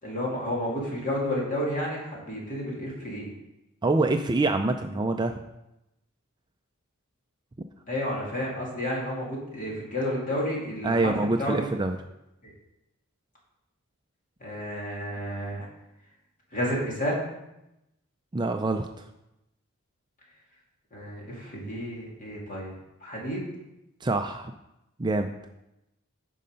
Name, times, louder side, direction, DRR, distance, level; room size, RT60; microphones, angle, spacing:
voice 1, 0.0-3.3 7.9-11.7 12.4-12.5 14.4-15.7 16.5-17.2 20.9-22.7 23.0-23.4, equal, 35° left, -3 dB, 2.6 m, -31 dB
voice 2, 3.8-5.4 10.8-12.0 18.3-18.9 24.0-24.5 25.0-25.3, right 2 dB, 20° right, 5 dB, 0.4 m, -25 dB
9.5 x 5.5 x 5.2 m, 0.90 s
head